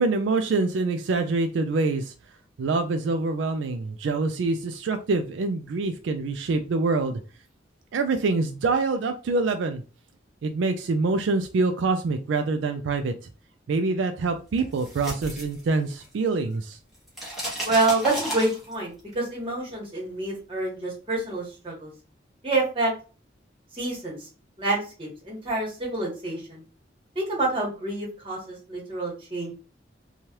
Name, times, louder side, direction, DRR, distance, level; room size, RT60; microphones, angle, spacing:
voice 1, 0.0-2.1 2.6-7.2 7.9-9.8 10.4-13.1 13.7-16.8, right 3 dB, 80° right, 7 dB, 0.3 m, -25 dB
sound 1, 14.6-16.3 16.5-19.0, right 1 dB, ahead, 1.0 m, -33 dB
voice 2, 17.6-21.9 22.4-22.9 23.7-24.3 24.6-26.6 27.1-29.5, right 2 dB, 30° right, -3 dB, 1.3 m, -27 dB
3.1 x 2.3 x 2.8 m, 0.34 s
head